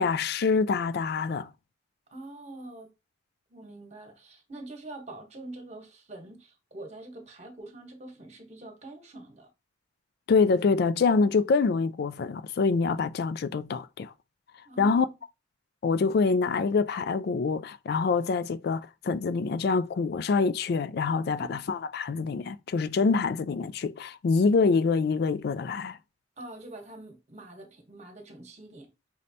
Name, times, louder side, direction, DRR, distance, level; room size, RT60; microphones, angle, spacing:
voice 1, 0.0-1.5 10.3-14.1 14.8-15.1 15.8-26.0, left 4 dB, 50° left, 0.3 m, -25 dB
voice 2, 2.1-2.9 3.5-9.5 14.6-15.2 21.3-21.6 26.4-28.9, right 2 dB, 35° right, 1.1 m, -45 dB
5.3 x 3.2 x 2.7 m
head